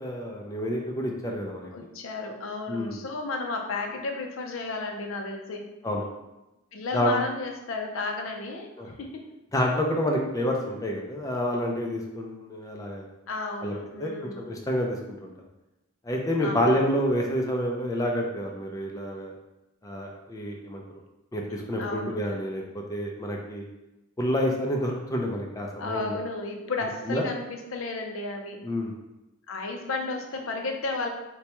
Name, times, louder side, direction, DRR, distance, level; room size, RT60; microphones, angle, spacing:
voice 1, 0.0-1.7 2.7-3.0 5.8-6.0 6.9-7.1 8.8-8.9 9.5-13.1 13.6-13.7 14.0-15.3 16.0-19.3 19.8-20.8 21.3-23.7 24.2-26.2 27.1-27.2 28.6-28.9, equal, 15° left, 0 dB, 0.4 m, -28 dB
voice 2, 1.7-5.7 6.7-9.2 13.3-14.5 16.4-16.8 21.8-22.2 25.8-28.6 29.5-31.1, left 3 dB, 70° left, 3 dB, 0.5 m, -33 dB
4.2 x 2.2 x 2.9 m, 0.96 s
head